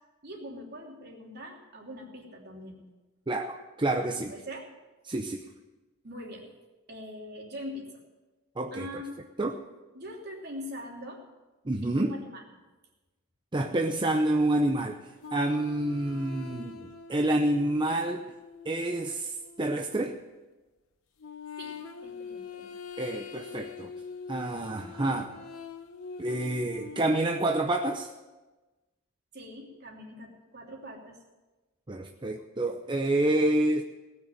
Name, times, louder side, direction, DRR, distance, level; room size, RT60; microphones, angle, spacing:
voice 1, 0.2-2.8 4.3-4.7 6.0-6.5 6.9-8.0 8.7-9.2 9.9-11.2 11.8-12.4 21.6-21.8 22.0-22.7 29.3-31.2, equal, 50° right, -1 dB, 2.9 m, -42 dB
voice 2, 3.3-4.3 5.1-5.4 8.6-8.9 9.4-9.6 11.6-12.1 13.5-15.0 15.3-18.2 18.6-20.2 23.0-23.9 24.3-25.3 26.2-28.1 31.9-33.8, right 1 dB, 20° right, 3 dB, 0.7 m, -28 dB
sound 1, 15.2-20.2 21.2-27.1, left 5 dB, 75° left, 1.0 m, -44 dB
18.0 x 6.4 x 9.0 m, 1.2 s
head